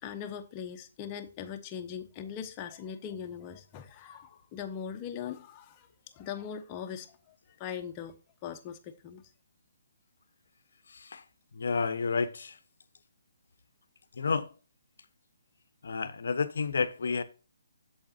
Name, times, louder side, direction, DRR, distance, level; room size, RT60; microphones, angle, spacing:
voice 1, 0.0-5.9 6.1-7.2 7.6-8.2 8.4-9.2, left 8 dB, 25° left, 1.1 m, -40 dB
voice 2, 10.9-11.2 11.5-12.6 14.2-14.5 15.8-17.2, left 5 dB, 65° left, 0.9 m, -30 dB
8.6 x 7.2 x 2.8 m
figure-of-eight pair, 135°, 0 cm